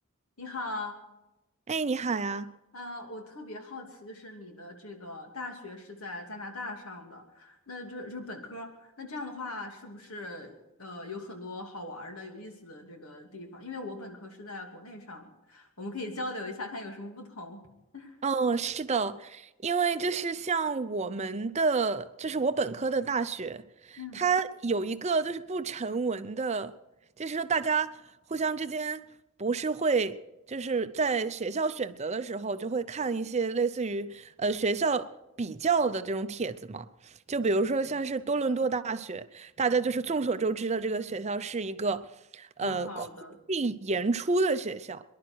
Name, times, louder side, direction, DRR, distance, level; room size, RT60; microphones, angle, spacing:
voice 1, 0.4-1.0 2.7-17.6 17.9-18.2 24.0-24.2 42.6-43.4, left 2 dB, 85° left, 2.7 m, -40 dB
voice 2, 1.7-2.5 18.2-26.7 27.2-28.0 28.3-29.0 29.4-30.2 30.5-35.1 35.4-42.1 42.3-43.1 43.5-45.0, right 4 dB, 30° right, 0.6 m, -29 dB
24.5 x 11.5 x 4.6 m
head